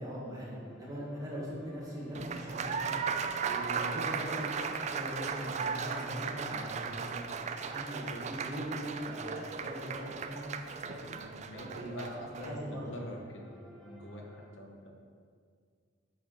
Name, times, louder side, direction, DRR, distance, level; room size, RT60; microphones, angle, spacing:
voice 1, 0.0-3.0 3.5-7.3 7.7-10.5 10.8-11.0 11.5-11.9 12.3-12.9, equal, 20° right, -6 dB, 1.7 m, -41 dB
sound 1, 0.6-14.5, equal, 5° left, 0.7 m, -58 dB
Applause, 2.1-12.5, right 6 dB, 35° right, 0.3 m, -36 dB
voice 2, 11.1-15.0, equal, 65° left, 0 dB, 1.0 m, -46 dB
8.2 x 4.3 x 5.5 m, 2.1 s
head